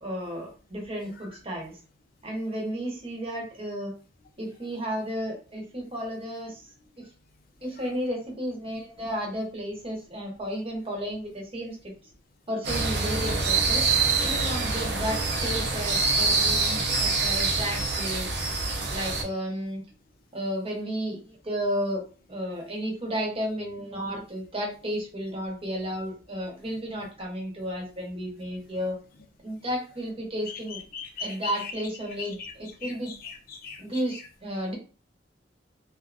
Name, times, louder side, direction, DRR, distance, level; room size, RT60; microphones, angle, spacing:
voice 1, 0.0-1.8 2.2-3.9 4.4-6.7 7.0-7.1 7.6-11.9 12.5-13.8 14.2-18.3 18.9-19.8 20.3-22.0 22.3-29.0 29.4-30.8 31.2-33.1 33.8-34.7, equal, 30° right, -1 dB, 0.9 m, -33 dB
sound 1, 12.6-19.2, right 4 dB, 65° right, 0.7 m, -25 dB
voice 2, 30.7-31.7 32.2-32.5 32.8-33.8, left 5 dB, 55° left, 5 dB, 0.4 m, -39 dB
2.6 x 2.4 x 2.4 m, 0.36 s
head